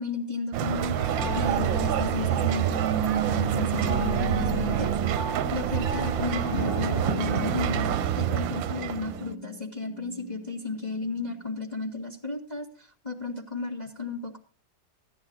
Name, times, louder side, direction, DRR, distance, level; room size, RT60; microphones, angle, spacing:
voice 1, 0.0-5.2 5.5-14.4, left 4 dB, 20° left, -2 dB, 1.9 m, -34 dB
sound 1, 0.5-9.3, right 11 dB, 80° right, 1.5 m, -27 dB
sound 2, 1.0-11.4, equal, 50° left, 2.7 m, -36 dB
16.0 x 10.5 x 3.9 m, 0.36 s
omnidirectional pair, 2.1 m